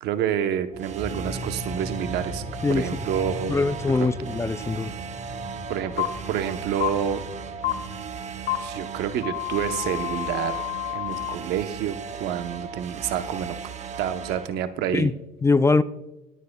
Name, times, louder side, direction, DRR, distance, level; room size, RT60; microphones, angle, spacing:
voice 1, 0.0-2.4 2.7-3.6 5.7-7.2 8.6-10.5 10.9-13.6 14.0-15.1, right 9 dB, 75° right, 0.8 m, -28 dB
sound 1, 0.7-14.5, right 6 dB, 45° right, 0.8 m, -37 dB
sound 2, 1.0-12.0, left 1 dB, 5° right, 2.1 m, -39 dB
voice 2, 3.5-4.9 14.9-15.1 15.4-15.8, left 3 dB, 15° left, 0.4 m, -22 dB
sound 3, 6.0-6.1 6.8-6.9 7.6-7.7 8.5-8.6 9.2-11.3, left 20 dB, 80° left, 2.8 m, -29 dB
23.0 x 9.2 x 2.2 m
cardioid pair, 110°, 17 cm